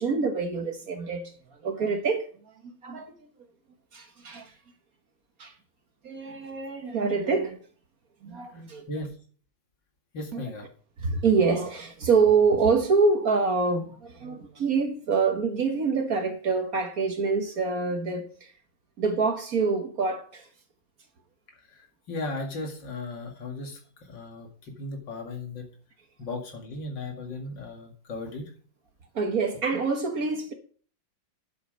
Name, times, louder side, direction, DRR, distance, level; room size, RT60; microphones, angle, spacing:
voice 1, 0.0-2.3 2.8-3.1 3.9-4.5 5.4-5.5 6.0-7.6 8.2-8.8 10.3-10.4 11.0-18.5 19.0-20.5 29.1-30.5, right 4 dB, 50° right, 1.5 m, -26 dB
voice 2, 10.1-10.7 21.7-23.8 24.1-25.7 26.2-28.5 29.7-29.8, left 2 dB, 65° left, 2.7 m, -36 dB
10.0 x 7.8 x 5.2 m
omnidirectional pair, 2.2 m